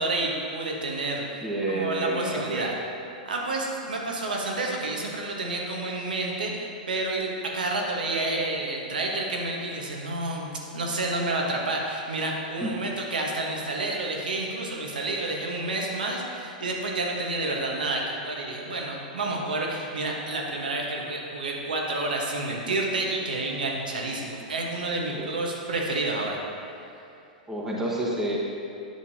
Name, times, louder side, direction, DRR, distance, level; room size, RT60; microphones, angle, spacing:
voice 1, 0.0-1.4 1.7-2.8 3.3-26.4, right 2 dB, 80° right, -1 dB, 1.3 m, -29 dB
voice 2, 1.4-2.7 12.6-12.7 25.1-25.3 27.5-28.4, right 1 dB, 10° right, -5 dB, 1.2 m, -29 dB
9.4 x 7.1 x 2.8 m, 2.7 s
hypercardioid pair, 105°, 5 cm